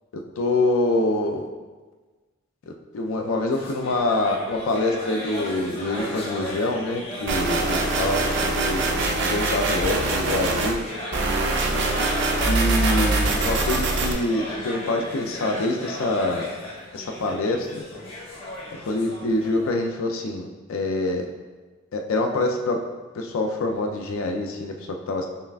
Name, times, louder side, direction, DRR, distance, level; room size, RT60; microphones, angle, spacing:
voice 1, 0.4-1.4 2.7-10.8 12.5-16.5 16.9-17.8 18.8-21.3 21.9-22.8 23.1-25.3, left 2 dB, 75° left, 3 dB, 0.4 m, -25 dB
sound 1, 3.5-19.7, left 1 dB, 30° left, 0.7 m, -35 dB
sound 2, 7.3-10.7 11.1-14.1, right 2 dB, 55° right, 0.4 m, -23 dB
5.4 x 2.4 x 2.3 m, 1.3 s
head